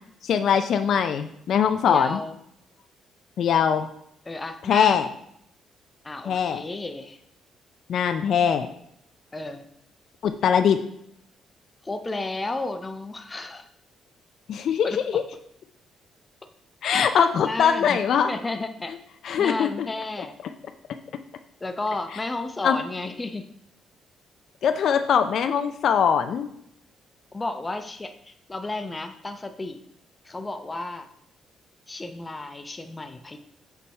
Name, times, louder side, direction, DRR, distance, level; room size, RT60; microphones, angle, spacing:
voice 1, 0.2-2.2 3.4-3.9 4.7-5.1 6.3-6.6 7.9-8.7 10.2-10.8 14.5-15.2 16.8-18.3 19.2-19.7 22.6-22.8 24.6-26.5, left 7 dB, 65° left, 8 dB, 0.4 m, -21 dB
voice 2, 1.8-2.3 4.3-5.1 6.0-7.2 9.3-9.7 11.8-13.7 14.8-15.2 17.4-18.0 18.3-18.9 19.4-20.4 21.6-23.5 27.3-29.8 30.2-31.1 31.9-33.4, left 2 dB, 20° left, 7 dB, 0.6 m, -33 dB
6.8 x 3.5 x 4.2 m, 0.71 s
cardioid pair, 90°, 0 cm